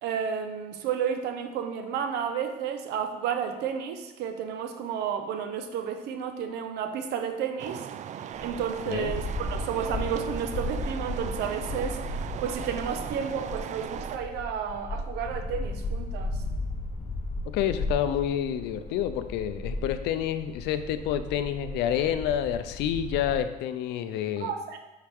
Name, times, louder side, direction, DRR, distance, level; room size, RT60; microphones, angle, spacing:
voice 1, 0.0-7.9 8.4-9.2 9.5-12.0 12.4-16.4 24.4-24.8, right 7 dB, 80° right, 7 dB, 0.9 m, -31 dB
sound 1, 7.6-14.2, right 9 dB, 45° right, 0.4 m, -38 dB
sound 2, 8.3-23.4, left 2 dB, 40° left, 0.9 m, -35 dB
voice 2, 17.5-24.5, left 10 dB, 90° left, 11 dB, 0.6 m, -28 dB
8.0 x 5.8 x 3.5 m, 1.0 s
cardioid pair, 110°, 17 cm